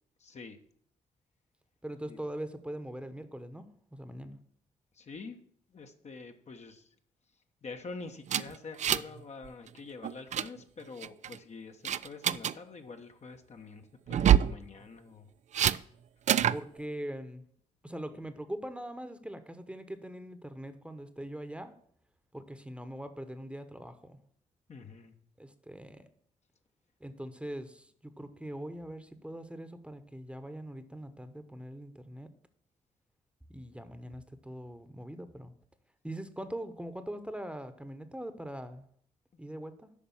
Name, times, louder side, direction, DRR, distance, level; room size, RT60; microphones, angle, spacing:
voice 1, 0.2-0.6 2.1-2.2 4.9-5.4 5.7-6.9 7.6-15.3 24.7-25.1, left 4 dB, 50° left, 5 dB, 1.1 m, -46 dB
voice 2, 1.8-4.4 16.5-17.4 17.8-21.7 22.3-24.2 25.4-26.1 27.0-32.3 33.5-35.5 36.0-38.9 39.4-39.9, right 1 dB, 5° right, 10 dB, 1.1 m, -42 dB
sound 1, 8.3-9.2 9.5-9.7 10.0-10.5 11.0-11.4 11.9-12.5 14.1-14.6 15.5-15.8 16.3-16.6, right 10 dB, 50° right, 0.4 m, -25 dB
8.4 x 5.5 x 7.2 m, 0.62 s
supercardioid pair, 50°, 15 cm